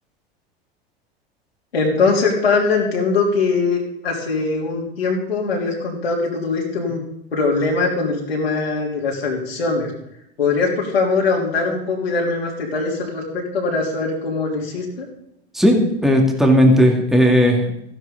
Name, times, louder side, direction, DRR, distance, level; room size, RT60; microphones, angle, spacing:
voice 1, 1.7-7.0 7.3-9.9 10.4-15.1, left 4 dB, 75° left, -3 dB, 3.5 m, -21 dB
voice 2, 15.5-17.6, equal, ahead, 1 dB, 2.2 m, -15 dB
15.0 x 11.0 x 3.9 m, 0.80 s
figure-of-eight pair, 85°, 31 cm